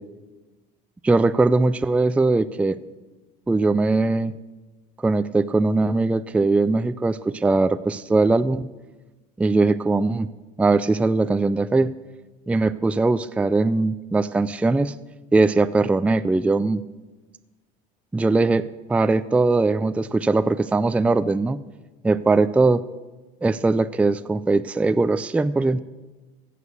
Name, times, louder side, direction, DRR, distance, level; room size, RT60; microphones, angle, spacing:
voice 1, 1.0-2.8 3.5-4.3 5.0-8.7 9.4-10.3 10.6-11.9 12.5-14.9 15.3-16.8 18.1-21.6 22.0-22.8 23.4-25.8, right 3 dB, 5° right, 13 dB, 0.4 m, -20 dB
16.0 x 6.6 x 7.1 m, 1.2 s
cardioid pair, 110°, 19 cm